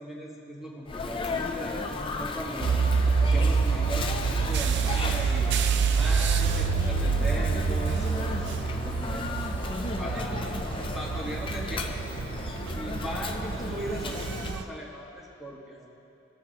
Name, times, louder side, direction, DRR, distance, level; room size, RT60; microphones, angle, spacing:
voice 1, 0.0-2.8 3.2-5.5 5.9-9.2 10.0-10.7 10.9-11.9 12.7-15.9, equal, ahead, -5 dB, 1.2 m, -38 dB
Sneeze, 0.9-14.6, left 3 dB, 25° left, 0.4 m, -35 dB
sound 1, 2.6-14.6, right 5 dB, 60° right, 0.4 m, -27 dB
16.5 x 5.8 x 2.9 m, 2.9 s
head